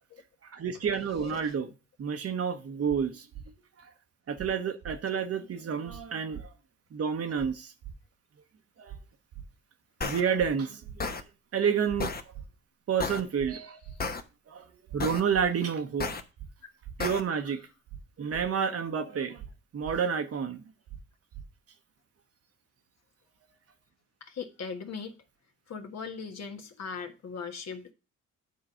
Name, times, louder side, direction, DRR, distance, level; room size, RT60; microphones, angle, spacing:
voice 1, 0.4-1.7 2.0-3.3 3.8-3.9 4.3-6.5 6.9-7.7 8.8-8.9 10.0-11.0 11.5-12.1 12.9-13.8 14.5-14.7 14.9-16.1 17.0-17.6 18.2-19.4 19.7-20.6, right 7 dB, 45° right, 1.1 m, -29 dB
voice 2, 1.1-1.5 13.9-14.1 24.2-25.2 25.7-27.9, left 5 dB, 55° left, 1.5 m, -39 dB
sound 1, 2.9-3.0 3.3-3.4 4.4-4.5 4.8-5.0 5.9-6.0 6.3-6.5 7.4-7.5 7.8-7.9 8.9-9.0 9.3-9.5 10.4-10.5 10.8-11.0 11.9-12.0 12.3-12.5 13.4-13.5 13.8-14.0 14.9-15.0 15.3-15.4 16.4-16.5 16.8-17.0 17.9-18.0 18.3-18.4 19.4-19.5 19.8-20.0 20.9-21.0 21.3-21.4, right 9 dB, 80° right, 2.3 m, -43 dB
sound 2, 10.0-10.2 11.0-11.2 12.0-12.2 13.0-13.2 14.0-14.2 15.0-15.2 16.0-16.2 17.0-17.2, left 4 dB, 30° left, 1.0 m, -32 dB
9.2 x 3.9 x 5.6 m
supercardioid pair, 70°, 32 cm